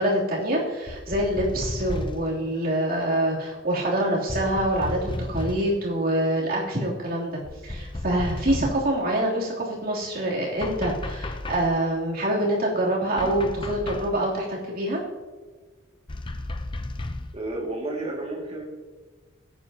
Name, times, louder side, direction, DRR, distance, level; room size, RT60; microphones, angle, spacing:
voice 1, 0.0-15.0, right 1 dB, 50° right, -4 dB, 3.0 m, -25 dB
sound 1, 0.9-2.4 4.3-5.7 7.4-8.9 10.6-11.8 13.2-14.2 16.1-17.4, left 1 dB, 25° left, 0.6 m, -33 dB
voice 2, 17.3-18.6, right 2 dB, 30° right, -1 dB, 2.2 m, -31 dB
17.5 x 8.9 x 2.8 m, 1.4 s
head